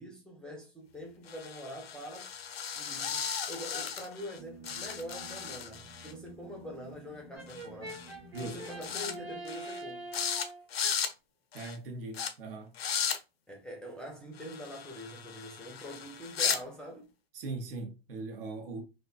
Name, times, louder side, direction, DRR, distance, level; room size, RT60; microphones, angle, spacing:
voice 1, 0.0-2.3 2.8-8.0 8.4-10.1 13.5-17.1, equal, 5° left, 0.4 m, -44 dB
sound 1, 1.3-4.4 4.6-6.1 7.5-7.6 7.9-8.1 8.4-9.1 9.5-9.8 10.1-10.5 10.7-11.1 11.5-11.8 12.1-12.3 12.7-13.2 14.4-16.6, left 7 dB, 75° left, 0.5 m, -36 dB
sound 2, 4.4-9.4, right 1 dB, 20° right, 0.8 m, -52 dB
Brass instrument, 7.3-10.7, right 2 dB, 90° right, 1.1 m, -44 dB
voice 2, 11.5-12.8 17.3-18.8, right 3 dB, 65° right, 0.6 m, -40 dB
2.5 x 2.1 x 2.3 m
figure-of-eight pair, 100°, 30 cm